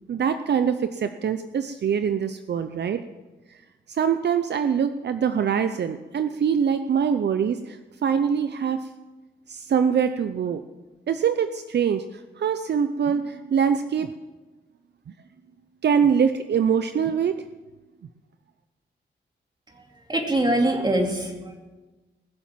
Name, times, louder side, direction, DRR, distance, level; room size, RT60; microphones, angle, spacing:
voice 1, 0.1-3.0 3.9-8.9 9.5-10.6 11.1-14.1 15.8-17.4, right 7 dB, 65° right, 10 dB, 0.6 m, -24 dB
voice 2, 20.1-21.6, right 1 dB, 20° right, 2 dB, 2.6 m, -23 dB
20.5 x 7.4 x 7.5 m, 1.2 s
wide cardioid pair, 110°, 19 cm